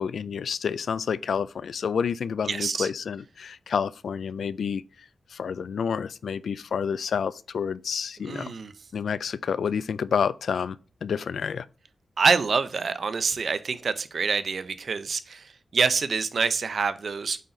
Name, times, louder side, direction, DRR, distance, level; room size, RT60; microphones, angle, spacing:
voice 1, 0.0-4.8 5.3-8.5 8.9-10.8 11.0-11.7, left 6 dB, 85° left, 0.3 m, -29 dB
voice 2, 2.5-2.9 8.2-8.7 12.2-17.4, right 5 dB, 60° right, 0.6 m, -26 dB
8.2 x 4.1 x 3.8 m
wide cardioid pair, 125°, 0 cm